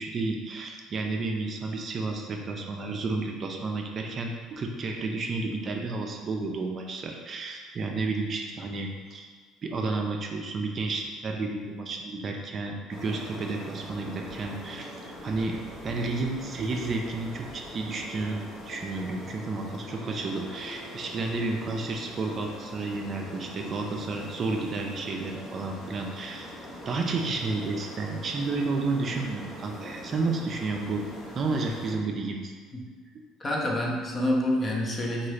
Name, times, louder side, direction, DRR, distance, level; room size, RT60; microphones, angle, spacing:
voice 1, 0.0-9.3 9.6-14.9 15.2-15.6 15.8-26.5 26.9-31.0 31.3-32.5, right 3 dB, 40° right, 2 dB, 0.3 m, -31 dB
sound 1, 12.9-31.9, left 1 dB, 55° left, 0.8 m, -42 dB
voice 2, 33.4-35.3, left 1 dB, 30° left, -2 dB, 0.6 m, -27 dB
2.8 x 2.3 x 3.1 m, 1.5 s
supercardioid pair, 95°, 0 cm